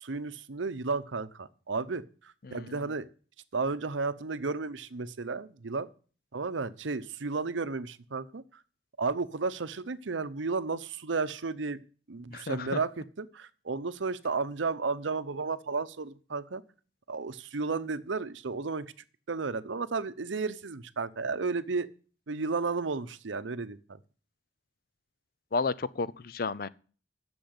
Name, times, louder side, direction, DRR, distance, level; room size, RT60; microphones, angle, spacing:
voice 1, 0.0-2.0 2.5-3.1 3.5-5.9 6.3-8.4 9.0-11.8 12.1-16.6 17.1-18.9 19.3-21.9 22.3-24.0, right 4 dB, 85° right, 0.7 m, -33 dB
voice 2, 2.4-2.8 12.3-12.8 25.5-26.7, left 4 dB, 50° left, 0.5 m, -32 dB
10.5 x 7.0 x 7.9 m
head